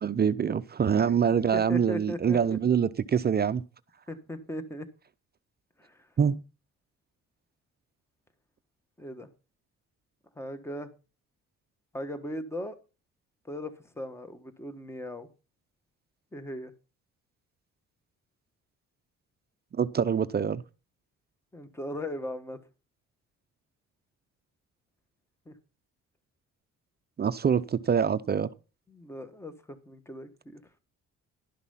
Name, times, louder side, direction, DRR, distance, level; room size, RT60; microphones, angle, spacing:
voice 1, 0.0-3.6 6.2-6.4 19.7-20.6 27.2-28.5, right 7 dB, 35° right, 0.5 m, -25 dB
voice 2, 1.5-2.4 4.1-4.9 5.8-6.1 9.0-9.3 10.4-10.9 11.9-12.8 13.4-15.3 16.3-16.7 21.5-22.6 25.5-25.6 28.9-30.6, equal, 10° left, 1.3 m, -38 dB
12.0 x 5.9 x 5.6 m
cardioid pair, 90°, 30 cm